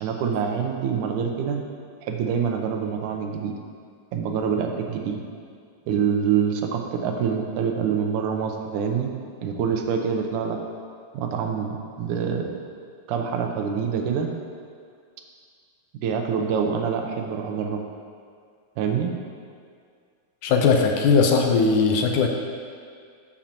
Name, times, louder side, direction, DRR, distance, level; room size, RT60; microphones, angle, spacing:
voice 1, 0.0-1.6 2.0-3.5 4.1-5.2 5.9-9.1 9.4-10.6 11.1-12.5 13.1-14.3 16.0-17.8 18.8-19.1, right 7 dB, 75° right, 3 dB, 2.1 m, -25 dB
voice 2, 20.4-22.3, left 5 dB, 75° left, 3 dB, 2.0 m, -19 dB
13.5 x 7.3 x 2.9 m, 2.2 s
omnidirectional pair, 4.0 m